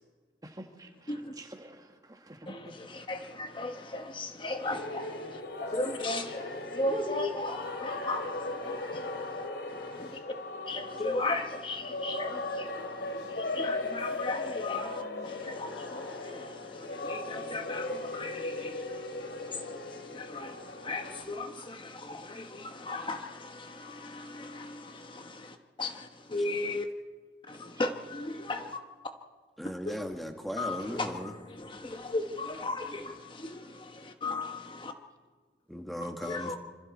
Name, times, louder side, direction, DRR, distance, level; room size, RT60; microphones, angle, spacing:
voice 1, 0.4-2.7 15.6-15.8 27.5-27.8 31.7-32.0, right 1 dB, 20° right, 4 dB, 1.7 m, -50 dB
voice 2, 2.5-10.2 10.7-26.9 27.5-28.8 29.9-30.0 30.6-34.9 36.2-36.6, left 2 dB, 30° left, 5 dB, 1.1 m, -37 dB
sound 1, 4.6-21.2, left 2 dB, 75° left, 2.5 m, -38 dB
voice 3, 29.6-31.3 35.7-36.6, equal, ahead, 4 dB, 1.8 m, -37 dB
26.5 x 26.0 x 4.3 m, 1.5 s
head